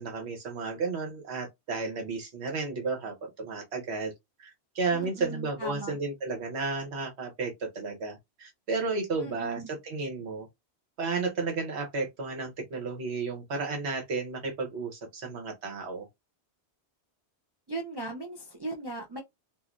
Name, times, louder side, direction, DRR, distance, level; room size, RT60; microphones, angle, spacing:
voice 1, 0.0-4.1 4.4-10.5 11.0-16.1, right 4 dB, 75° right, 1.2 m, -33 dB
voice 2, 4.9-5.9 9.2-9.7 17.7-19.2, right 2 dB, 30° right, 0.5 m, -38 dB
3.2 x 2.5 x 2.5 m
omnidirectional pair, 1.1 m